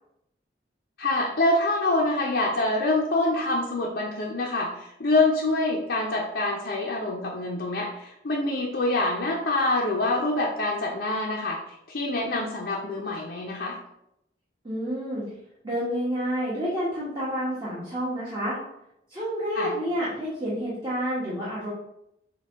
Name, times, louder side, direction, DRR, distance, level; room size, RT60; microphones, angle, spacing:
voice 1, 1.0-13.8 19.6-19.7, left 2 dB, 60° left, -3 dB, 0.6 m, -26 dB
voice 2, 14.6-15.2 15.6-18.6 19.1-21.7, equal, 25° right, -8 dB, 1.0 m, -29 dB
6.5 x 2.3 x 3.5 m, 0.81 s
head